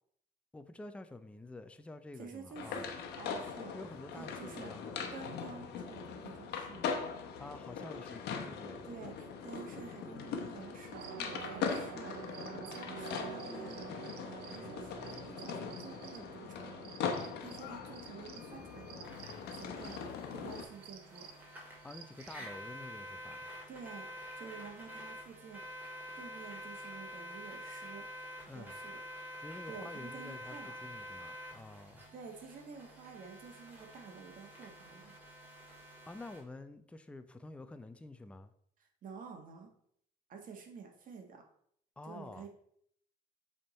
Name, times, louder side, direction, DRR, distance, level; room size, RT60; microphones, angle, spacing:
voice 1, 0.5-3.0 3.7-5.1 7.4-8.8 21.8-23.5 28.5-28.8 29.4-32.0 36.1-38.5 42.0-42.5, left 2 dB, 5° left, 0.5 m, -49 dB
voice 2, 2.2-2.9 3.2-3.7 4.1-4.7 5.1-7.0 8.8-13.8 14.2-19.1 19.5-20.0 20.3-21.3 22.4-22.5 23.7-25.7 26.2-28.0 28.5-29.0 29.7-30.7 32.1-35.2 38.8-39.7 40.3-41.4 42.0-42.5, right 5 dB, 55° right, 1.5 m, -50 dB
sound 1, 2.6-20.6, left 6 dB, 80° left, 1.1 m, -41 dB
sound 2, 10.9-22.4, right 7 dB, 75° right, 0.8 m, -49 dB
sound 3, 18.3-36.4, equal, 10° right, 2.5 m, -48 dB
7.7 x 3.7 x 4.2 m
cardioid pair, 110°, 17 cm